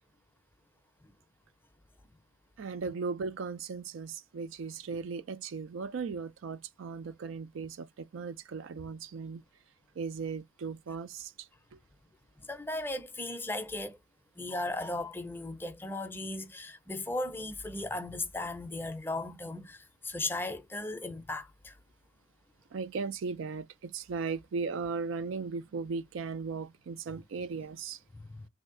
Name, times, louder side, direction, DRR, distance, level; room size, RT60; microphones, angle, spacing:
voice 1, 2.6-9.4 10.0-11.8 22.7-28.0, right 5 dB, 80° right, 0.4 m, -37 dB
voice 2, 12.4-14.0 14.4-21.8 28.1-28.5, left 2 dB, 10° left, 0.5 m, -37 dB
3.2 x 2.7 x 3.6 m
head